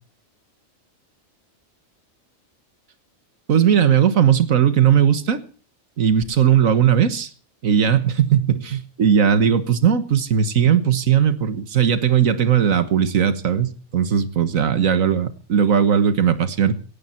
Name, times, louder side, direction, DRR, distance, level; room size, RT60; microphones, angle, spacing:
voice 1, 3.5-5.4 6.0-7.3 7.6-16.7, right 8 dB, 75° right, 13 dB, 1.7 m, -18 dB
17.0 x 15.5 x 4.4 m, 0.37 s
omnidirectional pair, 1.4 m